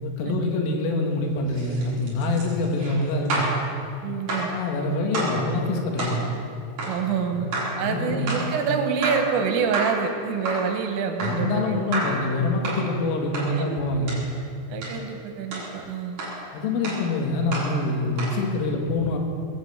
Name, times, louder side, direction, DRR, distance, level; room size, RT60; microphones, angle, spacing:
voice 1, 0.0-3.5 4.5-6.3 7.3-7.4 7.8-8.4 11.2-14.2 16.5-19.2, left 2 dB, 80° left, 1 dB, 4.4 m, -25 dB
sound 1, 1.5-3.6 4.3-4.6 5.1-5.4 6.0-6.2 6.8-7.0 7.5-7.8 8.3-8.5 9.0-9.3 9.7-10.1 10.4-10.7 11.2-11.5 11.9-12.2 12.6-12.9 13.3-13.5 14.1-14.3 14.8-15.0 15.5-15.7 16.2-16.4 16.8-17.1 17.5-17.8 18.2-18.4, right 2 dB, 40° right, 4.8 m, -30 dB
voice 2, 4.0-4.6 6.9-7.5 7.8-11.8 13.5-13.8 14.7-16.2, right 6 dB, 80° right, 5 dB, 3.8 m, -27 dB
20.5 x 7.9 x 8.0 m, 2.5 s
omnidirectional pair, 5.7 m